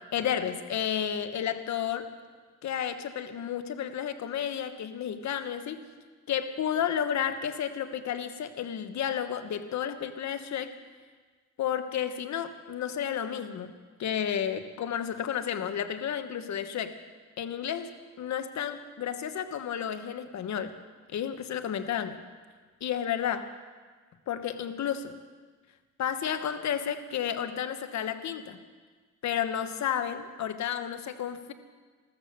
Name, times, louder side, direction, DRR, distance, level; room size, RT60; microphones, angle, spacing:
voice 1, 0.1-2.1 2.6-5.8 6.3-10.7 11.6-13.7 14.0-17.0 17.4-17.9 18.2-20.7 21.1-22.2 22.8-23.5 24.3-25.1 26.0-28.6 29.2-31.5, left 9 dB, 65° left, 9 dB, 1.3 m, -32 dB
15.5 x 13.5 x 6.7 m, 1.4 s
cardioid pair, 90°, 30 cm